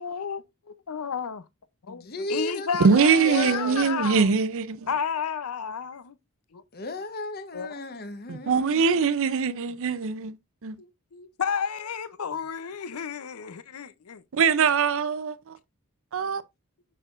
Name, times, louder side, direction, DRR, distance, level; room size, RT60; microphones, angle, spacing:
voice 1, 0.0-1.5 1.8-2.0 2.3-4.4 4.9-6.2 6.5-6.6 7.5-7.7 10.8-14.2 16.2-16.3, left 6 dB, 80° left, 0.6 m, -32 dB
voice 2, 1.9-3.9 6.7-9.0, left 2 dB, 45° left, 1.0 m, -35 dB
voice 3, 2.8-4.9 8.3-10.4 10.6-10.8 14.3-15.5 16.1-16.4, right 5 dB, 65° right, 0.5 m, -22 dB
6.6 x 6.4 x 2.5 m
head